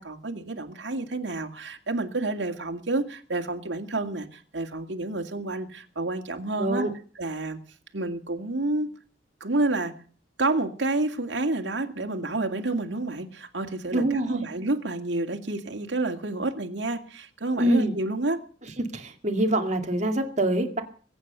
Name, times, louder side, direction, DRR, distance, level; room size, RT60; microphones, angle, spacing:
voice 1, 0.0-6.9 7.2-7.6 7.9-8.9 9.4-9.9 10.4-18.4, right 2 dB, 75° right, 3 dB, 2.2 m, -29 dB
voice 2, 6.6-6.9 13.9-14.4 17.6-17.9 18.8-20.8, right 1 dB, 40° right, 4 dB, 2.4 m, -25 dB
22.0 x 9.0 x 6.8 m, 0.43 s
head